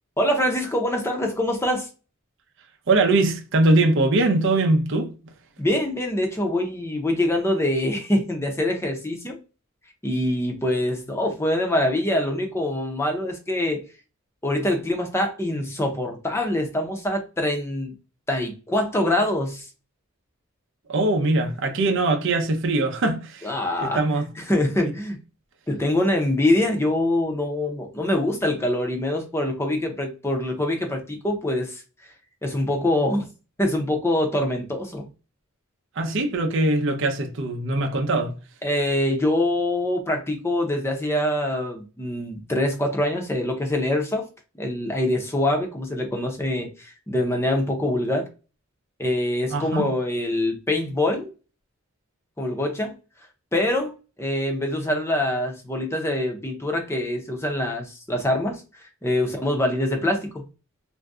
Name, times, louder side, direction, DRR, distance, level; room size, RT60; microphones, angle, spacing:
voice 1, 0.2-1.9 5.6-9.4 10.0-13.9 14.4-17.9 18.3-19.7 23.4-24.0 24.5-25.2 25.7-31.8 32.4-33.3 33.6-35.1 38.6-44.3 44.5-48.3 49.0-51.3 52.4-52.9 53.5-58.6 59.0-60.5, left 1 dB, 10° left, 0.6 m, -24 dB
voice 2, 2.9-5.1 20.9-23.5 23.8-24.3 36.0-38.4 49.5-49.9, right 2 dB, 60° right, 0.6 m, -21 dB
2.6 x 2.2 x 3.5 m
head